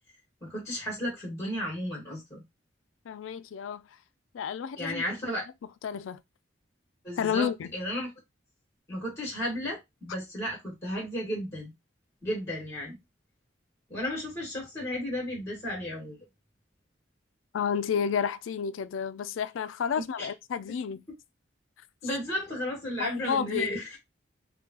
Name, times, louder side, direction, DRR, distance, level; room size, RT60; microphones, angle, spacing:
voice 1, 0.4-2.4 4.8-5.4 7.0-8.1 8.9-11.7 12.2-13.0 13.9-16.2 20.0-20.3 22.0-24.0, left 1 dB, 15° left, 1.6 m, -34 dB
voice 2, 3.1-3.9 4.3-5.0 5.8-6.2 7.2-7.7 17.5-21.0 23.0-23.7, left 7 dB, 85° left, 0.4 m, -31 dB
3.6 x 2.2 x 2.9 m
head